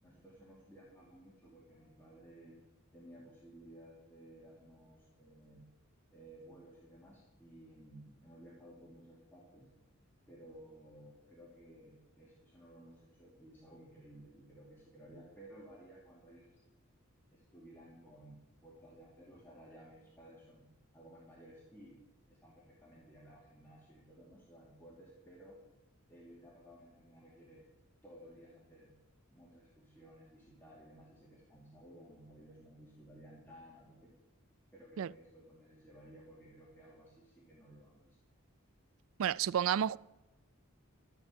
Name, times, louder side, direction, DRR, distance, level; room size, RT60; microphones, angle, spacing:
voice 1, 0.0-2.6 2.9-5.6 6.1-9.7 10.3-16.6 17.3-20.6 20.9-22.0 22.3-25.6 26.1-27.6 28.0-28.9 29.3-34.1 34.7-38.2, right 1 dB, 10° left, 2.4 m, -56 dB
voice 2, 39.2-40.0, right 9 dB, 75° right, 0.3 m, -30 dB
14.0 x 7.2 x 8.9 m
head